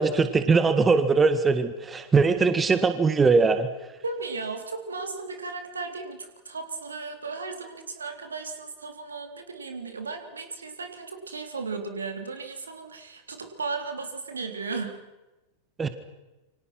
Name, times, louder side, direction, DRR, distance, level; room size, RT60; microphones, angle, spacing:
voice 1, 0.0-3.7 15.8-15.9, right 4 dB, 15° right, 10 dB, 1.9 m, -21 dB
voice 2, 4.0-15.0, right 4 dB, 75° right, 6 dB, 3.7 m, -35 dB
28.5 x 25.0 x 6.1 m, 1.1 s
figure-of-eight pair, 90°, 0 cm